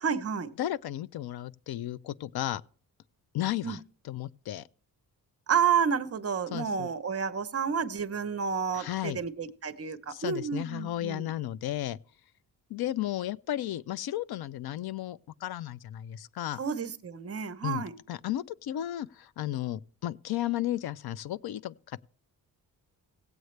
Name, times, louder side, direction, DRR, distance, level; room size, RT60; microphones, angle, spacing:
voice 1, 0.0-0.5 3.6-3.8 5.5-11.3 16.6-17.9, right 7 dB, 40° right, 0.8 m, -30 dB
voice 2, 0.6-2.6 3.3-4.7 6.5-6.9 8.7-9.2 10.1-12.0 12.7-16.6 17.6-22.0, left 13 dB, 75° left, 0.5 m, -34 dB
17.0 x 7.9 x 3.2 m
wide cardioid pair, 175°, 38 cm